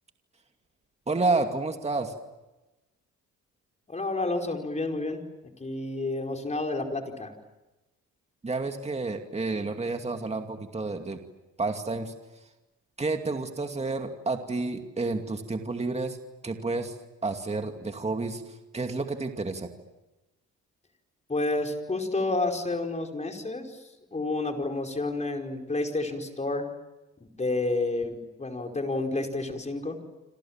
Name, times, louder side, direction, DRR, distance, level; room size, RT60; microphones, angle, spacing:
voice 1, 1.1-2.1 8.4-11.2 11.6-12.1 13.0-16.2 16.4-17.0 17.2-19.7, right 3 dB, 20° right, 5 dB, 2.5 m, -30 dB
voice 2, 3.9-5.2 5.6-7.3 21.3-23.8 24.1-26.7 27.2-30.0, left 2 dB, 25° left, 3 dB, 4.9 m, -30 dB
28.0 x 26.5 x 7.5 m, 1.0 s
cardioid pair, 90°, 30 cm